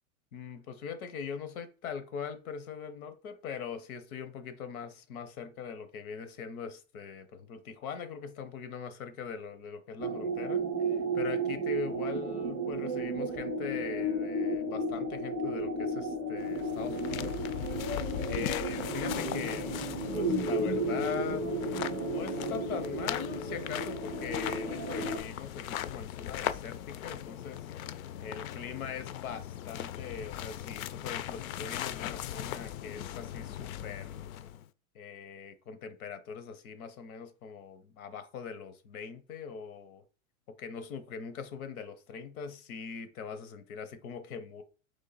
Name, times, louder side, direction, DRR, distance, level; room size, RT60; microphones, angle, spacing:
voice 1, 0.3-17.5 18.3-19.8 20.1-21.5 22.1-27.7 28.2-34.2 34.9-40.0 40.6-44.6, left 6 dB, 90° left, 0.9 m, -41 dB
sound 1, 10.0-25.2, right 1 dB, 10° right, 0.3 m, -33 dB
sound 2, 16.4-34.7, left 11 dB, 75° left, 0.5 m, -39 dB
3.7 x 3.2 x 4.0 m
supercardioid pair, 170°, 42 cm